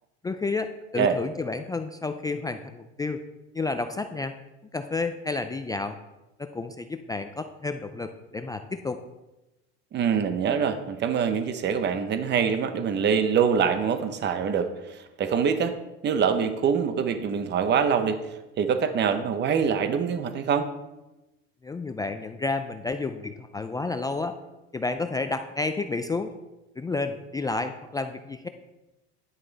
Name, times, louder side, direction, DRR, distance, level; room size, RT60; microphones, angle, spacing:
voice 1, 0.2-3.2 3.5-4.3 4.7-6.0 6.4-9.0 21.6-24.4 24.7-26.3 26.8-28.5, left 3 dB, 10° left, 7 dB, 0.3 m, -30 dB
voice 2, 9.9-15.8 16.0-18.2 18.6-20.7, right 7 dB, 35° right, 10 dB, 0.8 m, -24 dB
10.5 x 6.4 x 4.0 m, 1.0 s
supercardioid pair, 115°, 32 cm